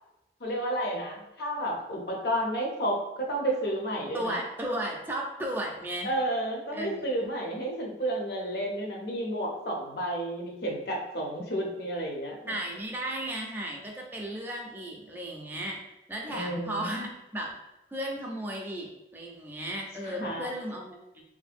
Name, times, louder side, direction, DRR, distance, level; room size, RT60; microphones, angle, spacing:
voice 1, 0.4-4.4 6.0-12.5 16.3-16.9 20.0-20.5, right 1 dB, 60° left, 0 dB, 0.6 m, -31 dB
voice 2, 4.1-6.1 6.7-7.3 12.5-15.8 16.1-17.6 17.9-21.2, right 1 dB, 10° right, 0 dB, 0.4 m, -35 dB
2.9 x 2.6 x 2.5 m, 0.93 s
head